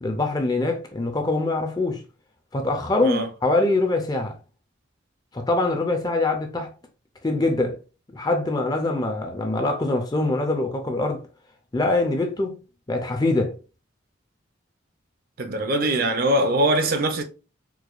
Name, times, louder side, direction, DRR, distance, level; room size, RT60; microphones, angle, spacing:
voice 1, 0.0-2.0 2.5-4.4 5.3-6.7 7.2-7.8 8.1-11.2 11.7-12.6 12.9-13.6, left 2 dB, 20° left, 0.4 m, -23 dB
voice 2, 15.4-17.2, right 1 dB, 45° right, 0.5 m, -22 dB
4.5 x 2.2 x 2.4 m
head